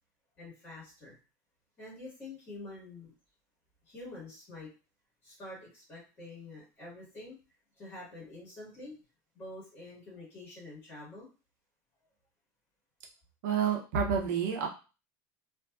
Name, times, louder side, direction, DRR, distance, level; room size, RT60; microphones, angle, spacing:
voice 1, 0.4-1.2 1.8-3.1 3.8-4.7 5.2-7.4 7.8-9.0 9.3-11.3, left 2 dB, 20° left, -7 dB, 1.3 m, -47 dB
voice 2, 13.4-14.7, right 7 dB, 85° right, 1 dB, 0.6 m, -29 dB
2.5 x 2.4 x 2.3 m, 0.32 s
cardioid pair, 170°, 9 cm